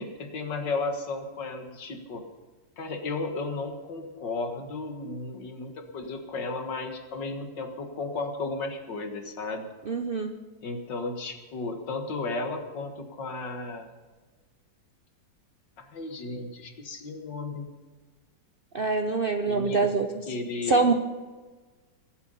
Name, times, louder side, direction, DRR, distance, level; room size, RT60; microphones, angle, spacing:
voice 1, 0.0-2.2 2.8-9.7 10.6-13.9 15.8-17.7 19.5-19.9 20.3-20.9, left 3 dB, 80° left, 5 dB, 2.3 m, -34 dB
voice 2, 9.9-10.3 18.7-20.2 20.7-20.9, right 4 dB, 50° right, 6 dB, 0.6 m, -25 dB
23.5 x 8.2 x 5.6 m, 1.4 s
omnidirectional pair, 1.9 m